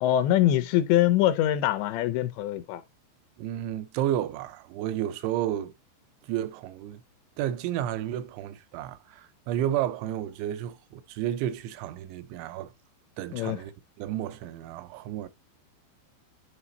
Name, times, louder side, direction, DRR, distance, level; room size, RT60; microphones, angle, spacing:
voice 1, 0.0-2.8 13.3-13.6, left 12 dB, 80° left, 2.9 m, -23 dB
voice 2, 3.4-5.7 6.2-7.0 7.4-12.7 13.2-13.7 14.0-15.3, right 11 dB, 85° right, 3.1 m, -31 dB
10.0 x 4.9 x 2.9 m
omnidirectional pair, 5.3 m